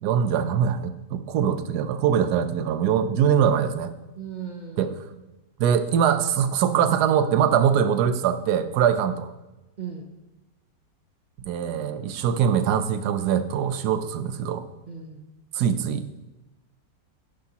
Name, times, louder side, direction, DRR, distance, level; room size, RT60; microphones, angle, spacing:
voice 1, 0.0-3.9 4.8-4.9 5.6-9.3 11.5-14.6 15.5-16.1, right 8 dB, 70° right, 10 dB, 1.2 m, -22 dB
voice 2, 4.2-4.9 9.8-10.1 14.9-15.3, right 7 dB, 55° right, 2 dB, 0.5 m, -37 dB
11.5 x 10.5 x 2.9 m, 1.0 s
omnidirectional pair, 1.9 m